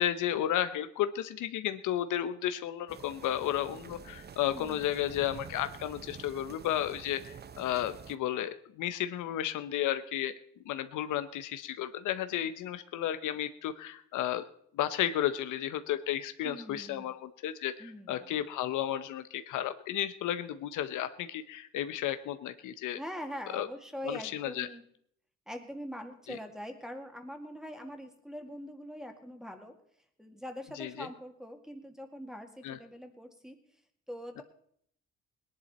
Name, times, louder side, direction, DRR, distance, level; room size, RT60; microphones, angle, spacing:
voice 1, 0.0-7.2 7.6-10.3 10.7-14.4 14.7-23.0 23.5-23.7 24.0-24.7 26.3-26.4 30.8-31.1 32.6-32.8, left 11 dB, 85° left, 10 dB, 0.8 m, -33 dB
sound 1, 2.9-8.1, right 7 dB, 35° right, 0.7 m, -48 dB
voice 2, 4.5-5.1 16.4-17.1 17.8-18.4 22.9-24.8 25.5-29.7 30.2-33.6 34.1-34.4, equal, ahead, 5 dB, 2.1 m, -43 dB
19.0 x 10.5 x 4.2 m, 0.67 s
cardioid pair, 90°, 30 cm